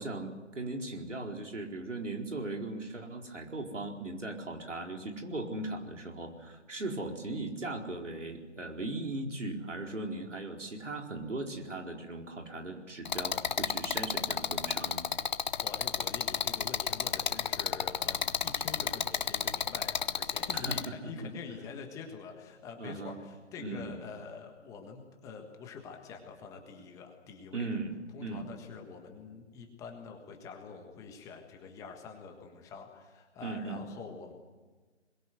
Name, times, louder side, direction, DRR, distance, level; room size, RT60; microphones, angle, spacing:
voice 1, 0.0-15.0 20.5-20.8 21.2-21.3 22.8-23.1 23.6-23.9 27.5-27.9 28.2-28.5 33.4-33.8, right 2 dB, 80° right, 2 dB, 4.5 m, -38 dB
sound 1, 13.1-20.9, left 6 dB, 40° left, 0.8 m, -32 dB
voice 2, 15.6-27.7 28.1-34.3, left 5 dB, 10° left, 3 dB, 1.5 m, -46 dB
23.0 x 21.5 x 8.0 m, 1.3 s
figure-of-eight pair, 150°, 36 cm